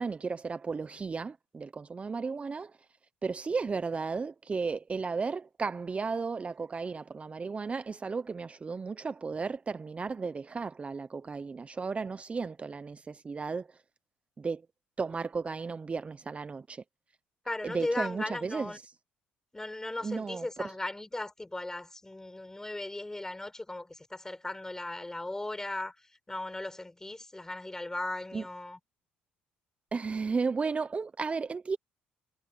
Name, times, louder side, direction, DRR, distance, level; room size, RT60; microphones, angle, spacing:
voice 1, 0.0-2.7 3.2-13.7 14.4-14.6 15.0-16.8 17.6-18.7 20.0-20.4 28.3-28.4 29.9-31.8, right 4 dB, 30° right, 0.8 m, -34 dB
voice 2, 17.5-18.8 19.5-28.8, left 2 dB, 15° left, 5.4 m, -37 dB
supercardioid pair, 65°, 4 cm